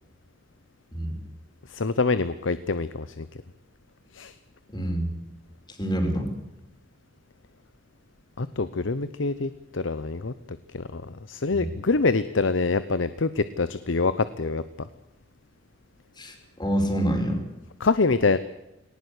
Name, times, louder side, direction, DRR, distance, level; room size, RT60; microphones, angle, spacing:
voice 1, 1.7-3.3 4.1-4.3 8.4-10.3 10.7-14.6 17.8-18.4, left 3 dB, 85° left, 14 dB, 0.8 m, -25 dB
voice 2, 4.7-5.2 5.8-6.3 11.5-11.7 16.2-16.3 16.6-17.4, equal, 25° left, 4 dB, 4.7 m, -26 dB
19.5 x 19.0 x 8.4 m, 0.93 s
head